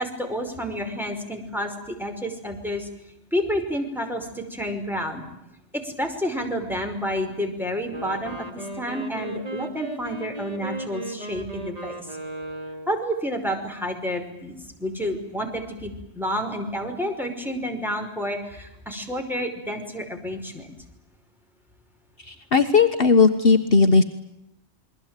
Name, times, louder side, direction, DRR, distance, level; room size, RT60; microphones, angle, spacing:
voice 1, 0.0-2.9 3.3-5.2 5.7-12.1 12.9-20.7, equal, ahead, 2 dB, 5.4 m, -30 dB
Wind instrument woodwind instrument, 7.8-13.1, right 1 dB, 30° right, 3.3 m, -36 dB
voice 2, 22.3-24.0, left 4 dB, 55° left, 7 dB, 1.6 m, -17 dB
28.5 x 22.5 x 9.2 m, 0.86 s
omnidirectional pair, 1.2 m